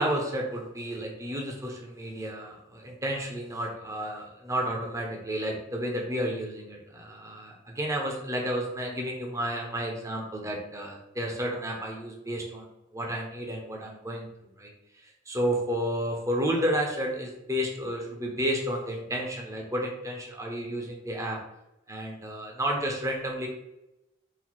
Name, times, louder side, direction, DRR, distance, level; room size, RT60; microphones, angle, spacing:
voice 1, 0.0-12.7 12.9-14.3 14.6-21.4 21.9-23.5, equal, 15° right, -1 dB, 0.8 m, -31 dB
4.1 x 2.3 x 4.4 m, 0.90 s
head